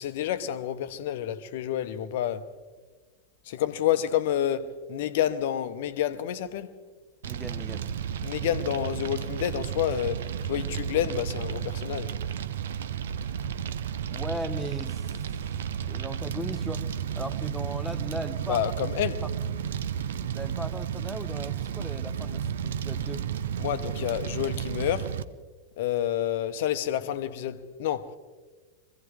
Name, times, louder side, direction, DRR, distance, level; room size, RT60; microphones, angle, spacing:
voice 1, 0.0-2.5 3.4-6.7 8.2-12.2 18.5-19.2 23.6-25.2 25.8-28.1, left 11 dB, 55° left, 0.9 m, -29 dB
voice 2, 7.2-7.9 14.1-15.2 15.9-16.9 17.2-18.6 19.2-19.3 20.3-23.2, right 1 dB, 5° right, 1.0 m, -37 dB
Fire, 7.2-25.2, right 8 dB, 60° right, 0.6 m, -32 dB
23.5 x 16.0 x 3.6 m
figure-of-eight pair, 90°, 0 cm